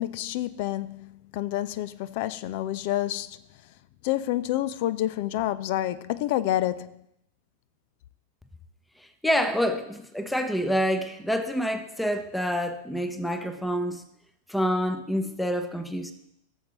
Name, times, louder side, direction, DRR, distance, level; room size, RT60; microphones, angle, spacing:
voice 1, 0.0-3.4 4.0-6.9, left 13 dB, 50° left, 0.4 m, -28 dB
voice 2, 9.2-14.0 14.5-16.1, equal, 5° left, 0.8 m, -27 dB
15.0 x 7.3 x 3.1 m
figure-of-eight pair, 90°, 0 cm